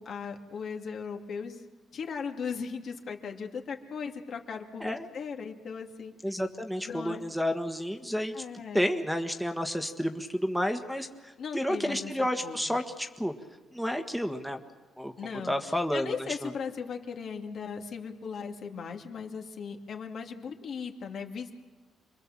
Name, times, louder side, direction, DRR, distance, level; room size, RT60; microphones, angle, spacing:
voice 1, 0.0-1.6 1.9-6.1 6.9-7.2 8.3-8.8 11.4-12.6 15.2-21.5, left 6 dB, 60° left, 3 dB, 2.5 m, -38 dB
voice 2, 6.2-8.4 8.7-13.3 13.7-14.6 15.0-15.1 15.5-16.5, equal, ahead, 6 dB, 1.5 m, -31 dB
27.5 x 22.0 x 7.5 m, 1.3 s
cardioid pair, 90°, 0 cm